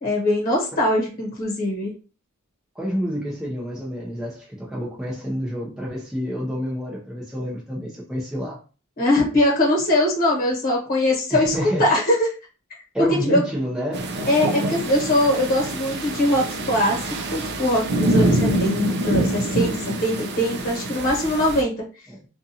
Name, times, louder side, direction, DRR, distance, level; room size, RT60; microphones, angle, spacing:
voice 1, 0.0-1.9 9.0-12.2 13.3-13.4 14.3-17.0 17.3-21.7, left 1 dB, 45° left, 1.2 m, -21 dB
voice 2, 2.7-8.6 11.3-11.9 12.9-14.1 22.1-22.2, equal, 5° right, 0.6 m, -28 dB
sound 1, 13.9-21.6, right 1 dB, 50° right, 0.4 m, -25 dB
2.5 x 2.4 x 2.7 m
head